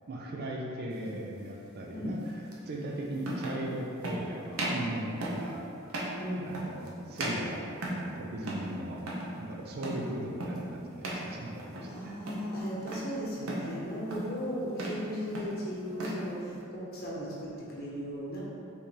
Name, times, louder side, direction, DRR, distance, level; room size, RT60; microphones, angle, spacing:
voice 1, 0.1-5.7 6.4-7.7 7.9-9.0 9.4-12.2, right 1 dB, 50° right, -1 dB, 0.4 m, -38 dB
sound 1, 1.0-1.2 2.5-2.6 3.2-3.6 4.0-4.2 4.5-4.9 5.2-5.5 5.9-6.2 6.5-6.9 7.2-8.1 8.4-8.7 9.0-9.3 9.8-10.1 10.4-10.7 11.0-11.3 11.6-12.0 12.3-13.1 13.5-13.7 14.1-14.4 14.7-15.0 15.3-16.2, right 1 dB, 75° right, 0.7 m, -36 dB
voice 2, 6.2-6.5 11.9-18.4, equal, 45° left, -6 dB, 1.1 m, -36 dB
5.0 x 3.3 x 2.9 m, 2.6 s
head